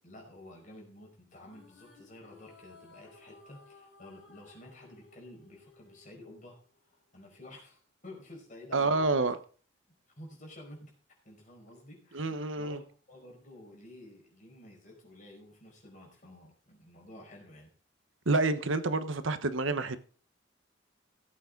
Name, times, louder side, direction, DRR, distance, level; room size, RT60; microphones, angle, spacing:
voice 1, 0.0-9.3 10.1-10.9 11.3-17.7, left 1 dB, 40° left, 5.1 m, -51 dB
sound 1, 1.3-6.8, left 3 dB, 70° left, 5.3 m, -58 dB
voice 2, 8.7-9.4 12.1-12.8 18.3-20.0, right 3 dB, 75° right, 1.1 m, -28 dB
16.5 x 8.4 x 3.8 m
head